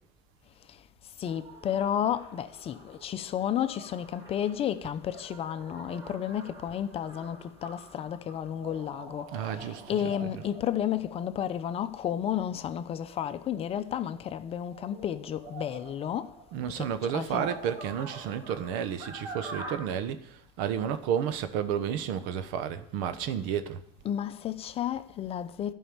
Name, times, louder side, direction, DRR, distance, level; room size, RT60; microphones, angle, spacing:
voice 1, 1.2-16.3 16.8-17.5 24.0-25.7, left 10 dB, 40° left, 0.7 m, -32 dB
sound 1, 1.2-14.0 14.5-19.8, right 2 dB, 25° right, 3.1 m, -47 dB
voice 2, 9.3-10.5 16.5-20.2 20.6-23.8, right 9 dB, 75° right, 1.0 m, -31 dB
11.0 x 5.5 x 8.7 m
supercardioid pair, 115°, 15 cm